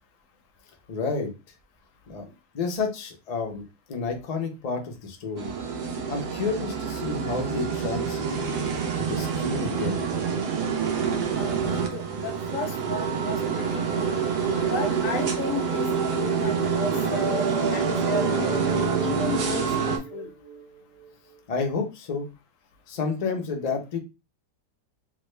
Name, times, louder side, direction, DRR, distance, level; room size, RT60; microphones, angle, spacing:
voice 1, 0.9-1.3 2.1-2.2 2.5-5.5 6.1-8.4 9.0-10.1 21.5-22.3 22.9-24.0, left 4 dB, 85° left, 4 dB, 0.3 m, -30 dB
sound 1, 5.4-20.0, right 6 dB, 85° right, 1.3 m, -27 dB
voice 2, 11.4-14.1 14.7-17.5 17.7-20.3, left 3 dB, 65° left, 5 dB, 0.8 m, -34 dB
sound 2, 17.2-21.1, right 4 dB, 30° right, 0.7 m, -34 dB
3.4 x 2.1 x 3.2 m, 0.27 s
omnidirectional pair, 1.7 m